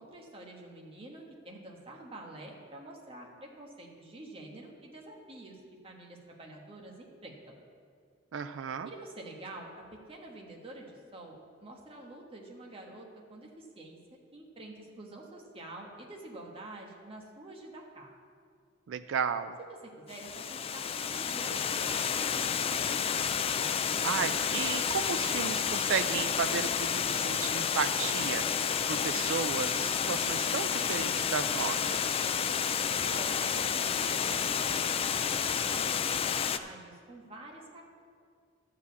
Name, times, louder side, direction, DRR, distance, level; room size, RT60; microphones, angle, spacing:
voice 1, 0.0-3.3 3.6-7.5 8.8-18.1 19.7-23.0 32.9-34.8 35.2-37.8, right 2 dB, 30° right, -1 dB, 1.4 m, -47 dB
voice 2, 8.3-8.9 18.9-19.6 24.0-32.2, right 6 dB, 80° right, 10 dB, 0.4 m, -34 dB
Water, 20.1-36.6, left 7 dB, 30° left, 0.3 m, -30 dB
11.5 x 4.9 x 8.2 m, 2.2 s
head